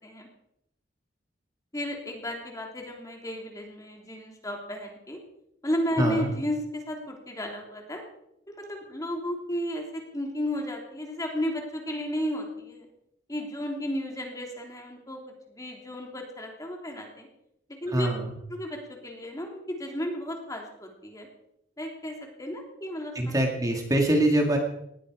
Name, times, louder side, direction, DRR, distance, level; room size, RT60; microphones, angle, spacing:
voice 1, 1.7-5.2 5.6-8.0 8.5-12.9 13.3-15.2 15.5-17.3 17.8-18.1 18.5-21.3 21.8-23.4, equal, 20° left, 1 dB, 3.2 m, -33 dB
voice 2, 6.0-6.3 17.9-18.4 23.1-24.6, right 1 dB, 20° right, 2 dB, 2.1 m, -24 dB
19.5 x 14.5 x 5.0 m, 0.79 s
head